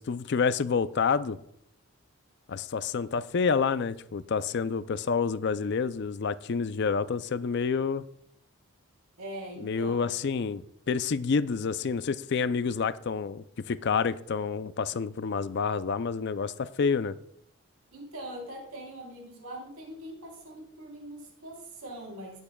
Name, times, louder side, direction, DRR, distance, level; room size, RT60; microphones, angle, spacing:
voice 1, 0.0-1.4 2.5-8.0 9.6-10.6 10.9-17.2, left 5 dB, 50° left, 0.4 m, -28 dB
voice 2, 9.2-10.1 17.9-22.4, right 1 dB, 85° right, 3.5 m, -42 dB
18.0 x 8.5 x 2.3 m
head